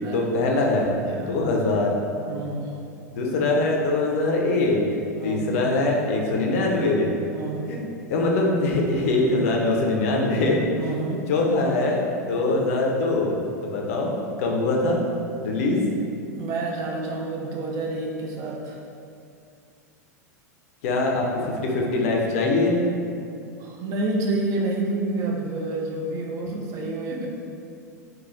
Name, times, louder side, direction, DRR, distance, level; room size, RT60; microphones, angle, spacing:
voice 1, 0.1-1.9 3.2-4.8 5.2-7.1 7.7-7.8 8.1-10.6 11.3-14.1 14.4-15.0 15.4-15.8 20.8-22.8 27.1-27.2, left 2 dB, 55° left, -1 dB, 0.5 m, -23 dB
voice 2, 0.7-1.9 2.3-2.7 5.2-5.5 7.3-7.7 10.7-11.3 16.3-18.8 23.6-27.3, right 2 dB, 35° right, -1 dB, 0.4 m, -29 dB
3.1 x 2.2 x 2.5 m, 2.5 s
figure-of-eight pair, 90°, 9 cm